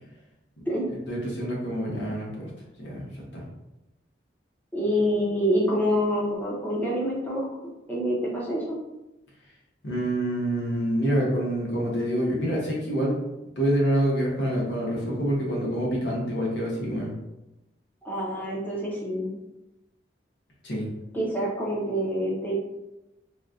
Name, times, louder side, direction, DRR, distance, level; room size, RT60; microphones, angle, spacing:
voice 1, 1.1-2.3 2.8-3.1 3.3-3.4 9.8-13.2 13.6-17.1 20.6-20.9, right 1 dB, 80° left, -3 dB, 1.0 m, -26 dB
voice 2, 4.7-7.5 7.9-8.8 18.0-19.3 21.1-22.5, equal, 10° left, -5 dB, 0.6 m, -26 dB
4.1 x 2.2 x 2.5 m, 0.95 s
head